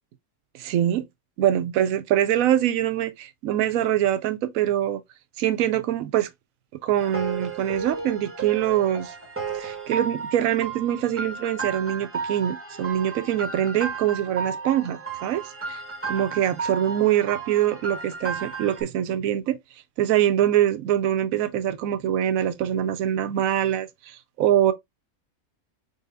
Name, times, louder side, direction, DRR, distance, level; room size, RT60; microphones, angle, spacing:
voice 1, 0.5-1.1 1.4-5.0 5.4-6.3 6.7-9.1 9.5-15.8 16.1-19.6 20.0-24.7, right 11 dB, 75° right, 1.0 m, -24 dB
sound 1, 7.0-18.8, right 5 dB, 10° right, 0.9 m, -34 dB
4.0 x 3.8 x 2.5 m
omnidirectional pair, 1.5 m